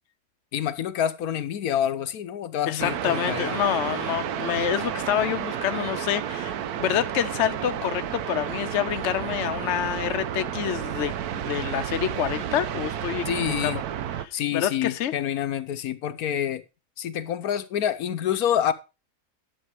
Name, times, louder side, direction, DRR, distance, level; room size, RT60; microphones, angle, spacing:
voice 1, 0.5-3.6 13.3-13.8 14.3-16.6 17.0-18.7, left 10 dB, 75° left, 1.2 m, -27 dB
voice 2, 2.7-13.8 14.2-15.1, left 10 dB, 60° left, 0.9 m, -27 dB
sound 1, 2.8-14.3, right 10 dB, 80° right, 1.2 m, -31 dB
11.5 x 6.6 x 4.7 m
omnidirectional pair, 1.6 m